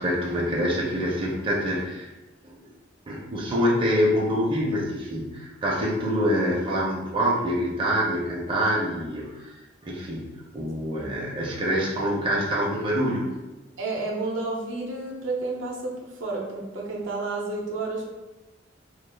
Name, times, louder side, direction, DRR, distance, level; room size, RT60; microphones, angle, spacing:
voice 1, 0.0-2.1 2.4-2.6 3.1-9.5 9.8-13.3, equal, 25° right, -4 dB, 0.5 m, -26 dB
voice 2, 13.8-18.1, right 3 dB, 75° right, -1 dB, 0.6 m, -31 dB
2.3 x 2.3 x 3.3 m, 1.1 s
head